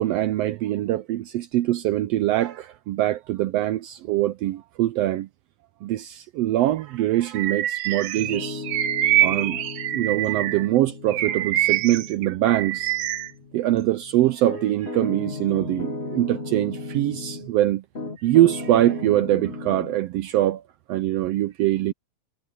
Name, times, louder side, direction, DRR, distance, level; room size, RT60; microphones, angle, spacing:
voice 1, 0.0-5.3 5.8-8.6 9.2-9.6 9.9-12.9 13.5-17.8 18.2-20.6 20.9-21.9, right 14 dB, 85° right, 1.4 m, -23 dB
Bird vocalization bird call bird song, 7.3-10.7 11.1-13.3, right 13 dB, 65° right, 1.6 m, -25 dB
Piano, 8.2-17.5 17.9-19.9, left 2 dB, 35° left, 1.1 m, -36 dB
omnidirectional pair, 3.4 m